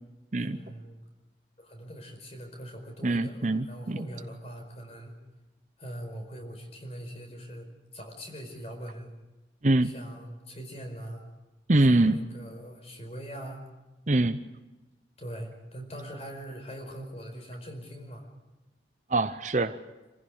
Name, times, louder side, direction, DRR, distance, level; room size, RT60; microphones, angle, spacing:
voice 1, 0.4-1.0 1.6-5.1 5.8-7.7 7.9-9.1 9.8-11.2 11.9-13.7 15.2-18.3, equal, 35° left, 4 dB, 4.9 m, -42 dB
voice 2, 3.0-4.0 9.6-9.9 11.7-12.2 14.1-14.4 19.1-19.8, right 2 dB, 40° right, 11 dB, 0.8 m, -24 dB
27.0 x 15.5 x 8.9 m, 1.1 s
head